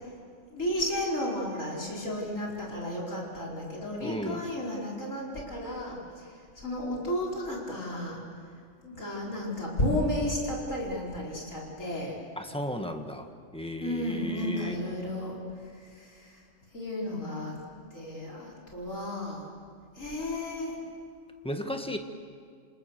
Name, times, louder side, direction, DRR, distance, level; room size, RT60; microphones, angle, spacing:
voice 1, 0.5-8.2 8.8-12.2 13.8-15.4 15.8-16.4 16.7-17.6 17.9-19.5 20.0-20.8, left 1 dB, 85° left, -3 dB, 5.3 m, -33 dB
voice 2, 4.0-4.4 12.4-13.3 13.5-14.7 21.4-22.0, equal, 5° left, 5 dB, 1.5 m, -34 dB
27.5 x 26.5 x 6.7 m, 2.1 s
omnidirectional pair, 1.3 m